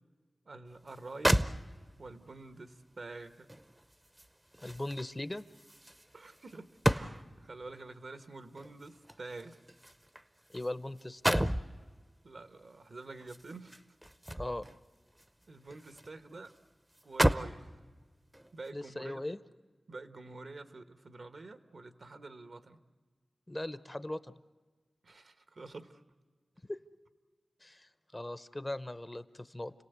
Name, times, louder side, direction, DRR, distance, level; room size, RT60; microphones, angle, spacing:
voice 1, 0.5-1.5 2.0-3.5 6.1-9.6 12.2-13.8 15.5-16.5 17.0-17.7 18.5-19.2 19.9-22.8 25.0-26.0, right 3 dB, 65° right, 9 dB, 1.2 m, -47 dB
sound 1, 0.9-1.0 1.2-2.1 3.5-7.5 8.6-10.7 11.0-11.7 13.2-14.8 15.2-16.1 16.5-16.6 17.0-17.6 18.3-18.5, right 1 dB, 15° right, 0.7 m, -33 dB
voice 2, 4.6-5.4 10.5-11.4 14.3-14.6 18.7-19.4 23.5-24.3 26.7-26.8 27.6-29.7, left 1 dB, 20° left, 14 dB, 0.7 m, -39 dB
29.5 x 17.5 x 8.0 m, 1.4 s
wide cardioid pair, 70°, 0 cm